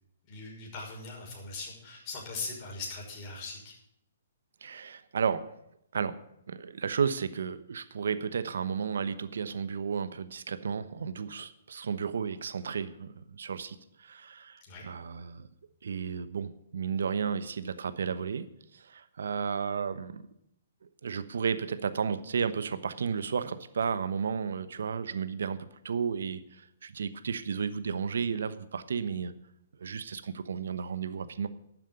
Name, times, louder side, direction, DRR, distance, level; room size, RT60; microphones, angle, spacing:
voice 1, 0.3-3.7 14.7-14.8, left 3 dB, 35° left, -2 dB, 5.9 m, -40 dB
voice 2, 4.6-5.5 5.9-6.2 6.5-15.5 15.8-18.5 18.7-20.2 21.0-29.3 29.8-31.5, right 6 dB, 70° right, 13 dB, 1.0 m, -33 dB
12.0 x 7.5 x 8.8 m, 0.78 s
hypercardioid pair, 130°, 0 cm